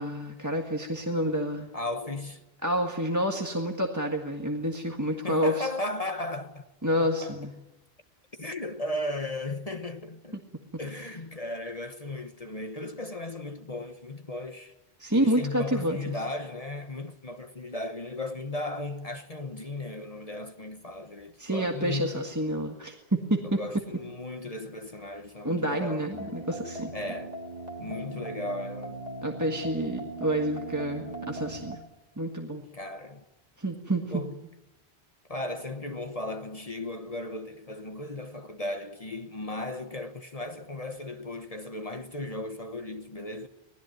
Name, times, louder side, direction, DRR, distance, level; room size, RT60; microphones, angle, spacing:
voice 1, 0.0-1.7 2.6-5.7 6.8-7.5 15.0-16.0 21.4-23.6 25.4-26.9 29.2-31.8 32.2-32.6 33.6-34.2, equal, 15° right, 1.7 m, -28 dB
voice 2, 1.7-2.4 5.2-6.7 7.0-7.4 8.4-10.4 10.8-14.7 15.1-22.3 23.4-26.1 26.9-27.4 27.8-29.0 32.7-33.2 34.1-34.4 35.3-43.5, left 2 dB, 40° left, 1.2 m, -36 dB
sound 1, 26.1-31.8, right 2 dB, 40° right, 2.9 m, -39 dB
25.0 x 19.0 x 9.3 m
omnidirectional pair, 1.0 m